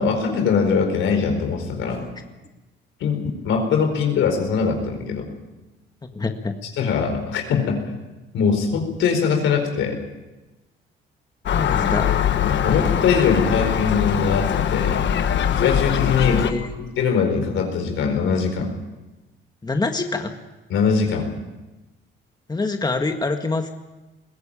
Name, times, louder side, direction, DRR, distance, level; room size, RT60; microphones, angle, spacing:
voice 1, 0.0-2.1 3.0-5.3 6.8-7.8 8.3-10.0 12.4-15.0 15.6-16.5 16.8-18.7 20.7-21.3, left 5 dB, 85° left, 4 dB, 4.6 m, -22 dB
voice 2, 6.1-6.6 11.5-12.2 16.2-16.7 19.6-20.3 22.5-23.7, left 3 dB, 20° left, 5 dB, 1.7 m, -25 dB
Gull seagull, 11.5-16.5, left 9 dB, 65° left, 1.4 m, -21 dB
21.0 x 16.0 x 8.9 m, 1.1 s
cardioid pair, 90°, 20 cm